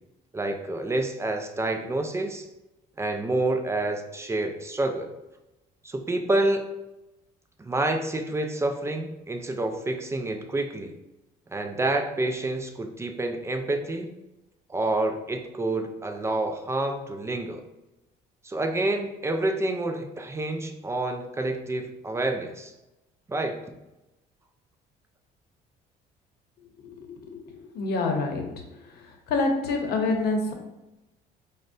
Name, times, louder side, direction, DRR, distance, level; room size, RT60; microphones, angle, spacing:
voice 1, 0.3-2.5 3.0-5.1 5.8-6.7 7.6-11.0 11.5-14.1 14.7-17.6 18.4-22.7 23.3-23.6, right 2 dB, 15° right, 5 dB, 0.3 m, -28 dB
voice 2, 26.8-28.4 28.9-30.5, left 3 dB, 70° left, 3 dB, 0.7 m, -27 dB
5.1 x 2.1 x 2.5 m, 0.98 s
cardioid pair, 110°, 17 cm